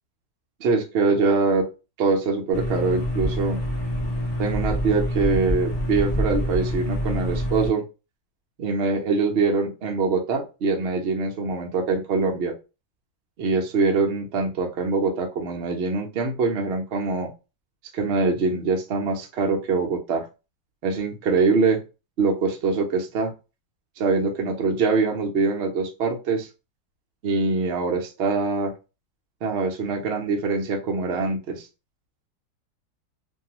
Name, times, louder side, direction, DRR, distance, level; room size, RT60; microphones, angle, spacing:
voice 1, 0.6-1.7 2.0-3.6 4.4-7.8 8.6-12.5 13.4-17.3 17.9-20.3 20.8-21.8 22.2-23.3 24.0-26.5 27.2-28.7 29.4-31.7, right 4 dB, 90° right, 1 dB, 0.5 m, -23 dB
sound 1, 2.5-7.7, equal, 35° left, 0.4 m, -26 dB
2.6 x 2.3 x 2.8 m, 0.29 s
omnidirectional pair, 1.9 m